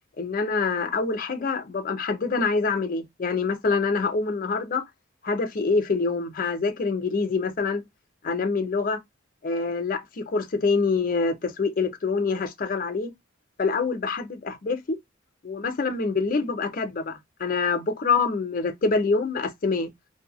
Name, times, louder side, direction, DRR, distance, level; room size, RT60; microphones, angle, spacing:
voice 1, 0.2-4.8 5.2-7.8 8.2-9.0 9.4-13.1 13.6-15.0 15.4-19.9, left 4 dB, 40° left, 0.5 m, -25 dB
2.6 x 2.1 x 2.8 m
head